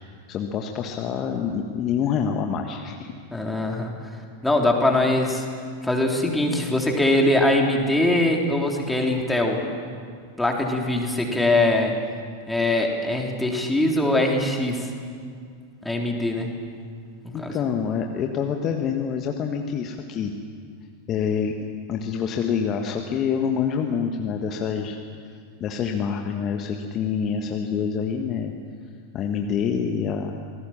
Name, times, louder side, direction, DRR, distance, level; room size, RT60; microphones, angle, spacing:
voice 1, 0.3-3.1 17.3-20.3 21.1-21.5 21.9-25.0 25.6-28.5 29.1-30.3, left 7 dB, 30° left, 3 dB, 1.5 m, -26 dB
voice 2, 3.3-3.9 4.4-5.5 5.8-9.6 10.4-12.0 12.5-14.9 15.8-16.5 17.2-17.6, left 1 dB, 5° left, 0 dB, 3.5 m, -22 dB
27.0 x 19.5 x 7.4 m, 2.1 s
figure-of-eight pair, 90°, 0 cm